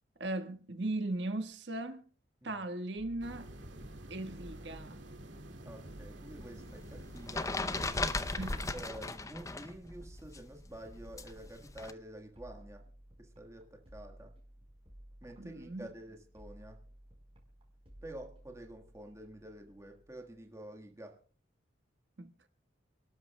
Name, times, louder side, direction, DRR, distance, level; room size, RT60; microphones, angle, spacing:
voice 1, 0.2-2.0 2.4-3.5 4.1-5.0 8.4-8.7 15.4-15.9 22.2-22.5, right 2 dB, 70° right, 1.5 m, -38 dB
sound 1, 3.0-20.6, right 1 dB, 30° right, 4.3 m, -56 dB
sound 2, 3.2-8.7, right 1 dB, 85° right, 2.2 m, -49 dB
voice 2, 5.6-7.9 8.7-12.9 13.2-14.3 15.2-16.8 18.0-21.2, right 1 dB, 15° right, 1.5 m, -49 dB
sound 3, 6.4-9.8 10.0-11.9, left 3 dB, 15° left, 0.6 m, -37 dB
29.0 x 12.5 x 2.2 m
head